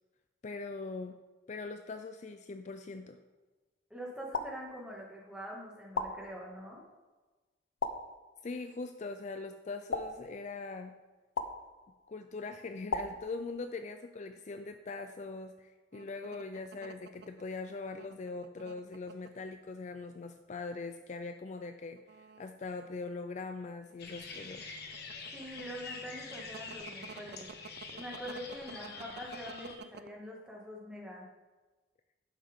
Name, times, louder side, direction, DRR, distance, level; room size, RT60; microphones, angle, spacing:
voice 1, 0.4-1.2 1.5-3.2 8.4-10.9 12.1-24.7, left 3 dB, 40° left, 7 dB, 0.4 m, -41 dB
voice 2, 3.9-6.8 25.3-27.5 27.9-31.3, equal, 5° right, -3 dB, 1.9 m, -44 dB
sound 1, 4.3-5.2 5.9-6.8 7.8-8.6 9.9-10.8 11.4-12.2 12.9-13.9, left 3 dB, 90° left, 0.7 m, -39 dB
sound 2, 15.9-19.3 20.1-20.5 20.9-21.0 21.8-23.5 23.9-30.1, right 5 dB, 55° right, 0.4 m, -50 dB
sound 3, 24.0-29.8, left 4 dB, 55° left, 1.3 m, -46 dB
11.0 x 7.4 x 3.6 m, 1.2 s
head